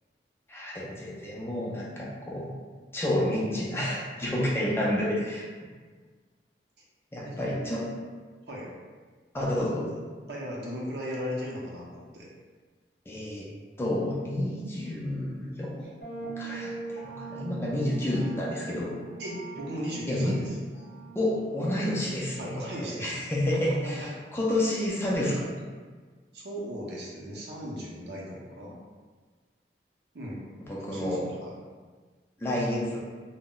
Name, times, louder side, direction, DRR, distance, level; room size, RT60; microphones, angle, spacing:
voice 1, 0.5-2.5 2.9-5.5 7.1-7.9 9.3-10.0 13.1-13.5 13.8-15.8 16.4-18.9 20.1-20.4 21.1-25.5 30.7-31.3 32.4-33.0, left 1 dB, 15° left, -5 dB, 0.4 m, -29 dB
voice 2, 10.3-12.3 19.2-20.5 22.4-23.2 26.3-28.7 30.1-30.4 30.8-31.5, equal, 70° right, -4 dB, 0.6 m, -37 dB
sound 1, 16.0-23.6, right 4 dB, 55° left, 0.6 m, -43 dB
2.2 x 2.0 x 3.7 m, 1.4 s
head